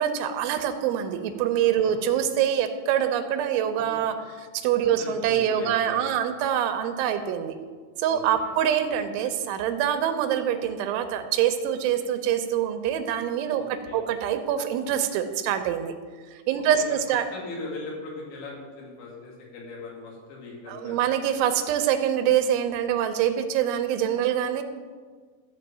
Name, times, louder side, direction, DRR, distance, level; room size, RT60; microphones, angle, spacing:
voice 1, 0.0-7.5 8.0-13.6 13.9-15.9 16.5-17.3 20.7-24.6, right 9 dB, 85° right, 8 dB, 3.1 m, -25 dB
voice 2, 1.8-2.3 3.8-4.1 4.8-6.3 8.1-8.6 13.5-14.1 16.8-17.0 17.3-21.0, left 3 dB, 70° left, -3 dB, 4.6 m, -40 dB
14.5 x 4.8 x 7.4 m, 1.5 s
omnidirectional pair, 5.5 m